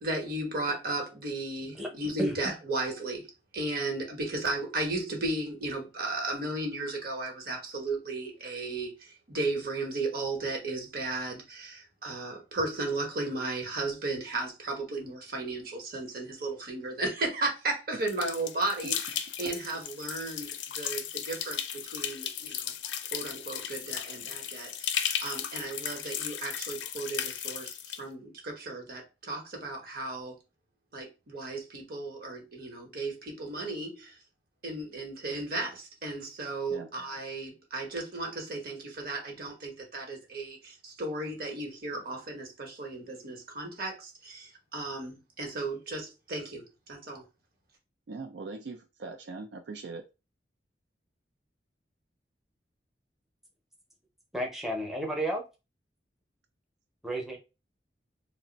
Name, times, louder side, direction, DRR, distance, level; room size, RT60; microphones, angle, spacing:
voice 1, 0.0-22.7 23.1-30.4 30.9-34.2 34.6-46.6 46.9-47.2, right 2 dB, 55° right, 1.0 m, -35 dB
sound 1, 18.1-28.0, left 9 dB, 85° left, 0.4 m, -35 dB
voice 2, 48.1-50.0, right 3 dB, 75° right, 0.4 m, -41 dB
voice 3, 54.3-55.4 57.0-57.4, right 1 dB, ahead, 0.6 m, -31 dB
2.5 x 2.1 x 3.8 m
head